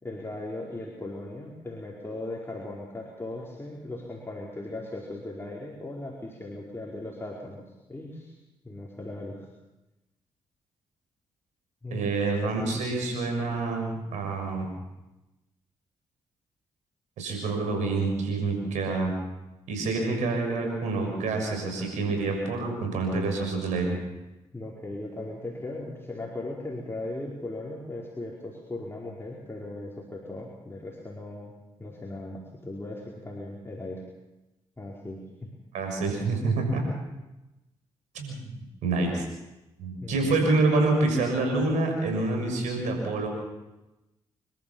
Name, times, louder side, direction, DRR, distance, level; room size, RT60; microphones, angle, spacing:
voice 1, 0.0-7.6 7.9-8.3 8.6-9.5 11.8-12.2 24.5-31.5 31.8-34.0 34.8-35.5 40.0-40.4, left 2 dB, 20° left, -3 dB, 4.9 m, -38 dB
voice 2, 11.9-14.7 17.2-19.1 19.7-24.0 35.7-36.8 38.1-38.5 38.8-39.3 39.8-43.3, right 3 dB, 85° right, 3 dB, 6.6 m, -27 dB
27.5 x 14.0 x 7.3 m, 1.0 s
supercardioid pair, 45°, 12 cm